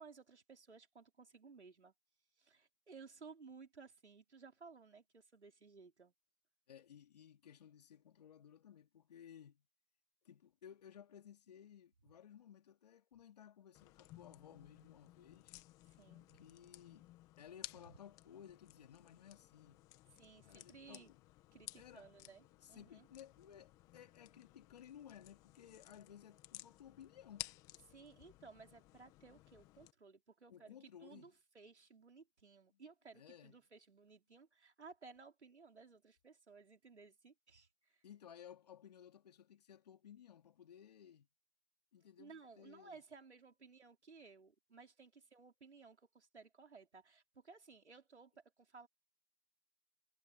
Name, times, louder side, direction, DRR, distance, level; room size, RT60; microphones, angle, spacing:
voice 1, 0.0-1.9 2.4-6.1 15.9-16.4 17.8-17.9 20.1-21.1 21.5-23.1 27.9-38.0 42.2-48.9, right 4 dB, 85° right, 4.7 m, -58 dB
voice 2, 6.7-9.7 10.2-15.5 16.4-17.1 17.4-19.8 20.4-21.2 21.8-27.5 30.5-31.3 32.7-32.8 33.1-33.6 38.0-41.3 41.9-43.0, left 9 dB, 35° left, 2.8 m, -58 dB
sound 1, 13.7-29.9, left 17 dB, 10° left, 1.2 m, -57 dB
hypercardioid pair, 160°, 33 cm